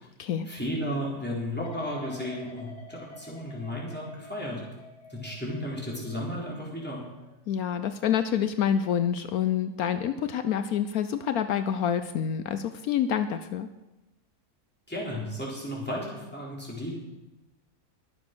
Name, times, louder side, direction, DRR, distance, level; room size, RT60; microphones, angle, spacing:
voice 1, 0.4-4.6 5.1-7.0 14.9-16.9, equal, 5° left, -4 dB, 4.1 m, -34 dB
sound 1, 1.6-8.6 9.0-9.4, left 1 dB, 90° left, 2.8 m, -49 dB
voice 2, 7.5-13.7, left 9 dB, 70° left, 10 dB, 1.1 m, -27 dB
22.0 x 7.5 x 6.2 m, 1.0 s
omnidirectional pair, 1.6 m